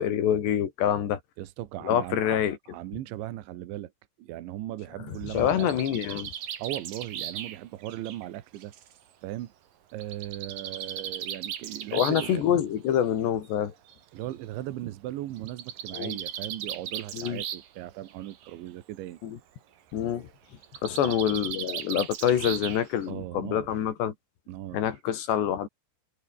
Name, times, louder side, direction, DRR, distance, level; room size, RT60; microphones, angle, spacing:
voice 1, 0.0-1.2 1.8-2.6 5.3-6.3 11.9-13.7 15.9-16.2 17.1-17.4 19.2-19.4 19.9-20.3 20.8-24.1 24.7-25.7, left 10 dB, 65° left, 4.6 m, -26 dB
voice 2, 1.4-2.4 2.7-3.9 4.2-5.7 6.6-8.7 9.2-9.5 9.9-12.5 14.1-19.2 21.0-21.2 23.1-23.7 24.5-24.9, right 14 dB, 75° right, 3.7 m, -37 dB
Bird, 5.1-8.9 10.0-12.4 13.4-13.5 13.9-14.0 14.2-14.3 15.4-17.8 18.1-18.5 20.6-23.1, right 10 dB, 55° right, 3.3 m, -37 dB
omnidirectional pair, 5.4 m